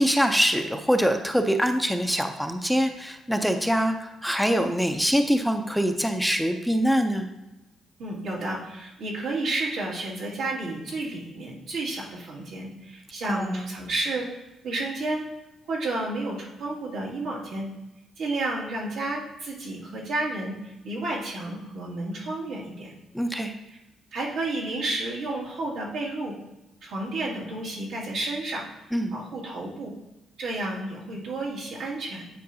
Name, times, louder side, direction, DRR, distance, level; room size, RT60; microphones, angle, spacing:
voice 1, 0.0-7.3 13.3-13.7 23.1-23.5 28.9-29.1, equal, ahead, 5 dB, 0.5 m, -24 dB
voice 2, 8.0-14.3 14.6-15.3 15.7-17.7 18.2-23.0 23.7-23.8 24.1-26.4 26.8-28.6 29.1-29.9 30.4-32.3, right 2 dB, 80° right, -6 dB, 2.1 m, -31 dB
9.3 x 4.6 x 2.7 m, 0.97 s
cardioid pair, 90°, 0 cm